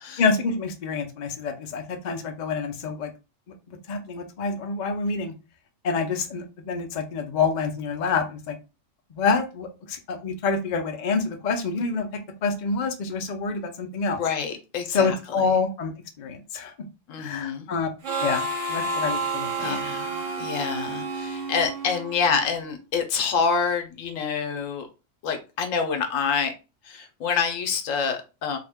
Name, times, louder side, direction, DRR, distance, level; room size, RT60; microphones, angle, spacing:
voice 1, 0.2-3.1 3.7-5.3 5.8-8.6 9.1-12.1 12.4-14.2 14.9-16.7 17.2-17.9 18.2-19.8, left 4 dB, 50° left, 0.6 m, -27 dB
voice 2, 14.2-15.2 17.1-17.7 19.6-24.9 25.2-26.5 26.9-28.6, left 6 dB, 80° left, 1.1 m, -27 dB
Harmonica, 18.0-22.5, right 2 dB, 70° right, 1.2 m, -30 dB
3.5 x 2.2 x 3.4 m
omnidirectional pair, 1.3 m